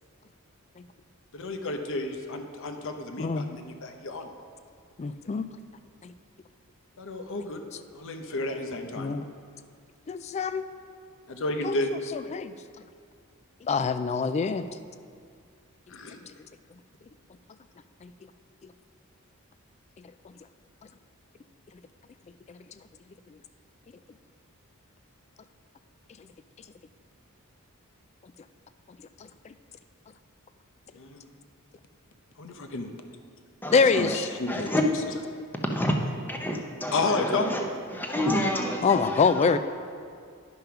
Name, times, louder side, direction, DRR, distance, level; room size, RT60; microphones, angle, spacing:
voice 1, 1.3-4.3 7.0-7.6 7.9-9.2 11.3-11.9 15.9-16.2 30.9-31.3 32.4-32.9 33.9-34.7 36.9-37.5, left 2 dB, 60° left, 6 dB, 0.8 m, -32 dB
voice 2, 5.0-5.5 6.0-6.1 9.0-9.3 10.1-10.7 11.6-11.8 12.1-12.5 13.6-14.7 16.3-16.4 18.0-18.1 18.6-18.7 20.0-20.3 22.5-22.6 23.3-23.4 26.2-26.3 29.4-29.5 33.7-34.3 38.8-39.6, left 5 dB, 30° left, 12 dB, 0.3 m, -26 dB
voice 3, 33.6-34.2 34.5-34.8 35.6-36.0 36.3-37.6 37.9-39.6, left 1 dB, 10° left, 2 dB, 0.8 m, -29 dB
10.5 x 5.5 x 5.7 m, 2.2 s
head